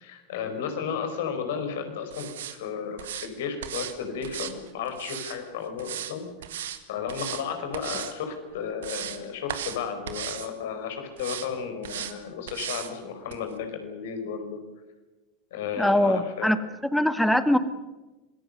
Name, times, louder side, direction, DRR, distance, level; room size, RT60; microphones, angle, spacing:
voice 1, 0.0-6.3 6.9-14.6 15.5-16.5, left 6 dB, 60° left, 6 dB, 4.9 m, -33 dB
sound 1, 2.1-2.6 3.0-3.3 3.6-3.9 4.2-5.4 5.8-6.1 6.4-6.8 7.1-7.4 7.7-8.1 8.5-9.2 9.5-9.8 10.1-10.5 11.2-11.5 11.8-12.1 12.5-12.9 13.3-13.4, right 10 dB, 65° right, 1.9 m, -36 dB
voice 2, 15.8-17.6, left 1 dB, 5° left, 11 dB, 1.9 m, -22 dB
26.5 x 21.0 x 6.8 m, 1.1 s
figure-of-eight pair, 80°, 0 cm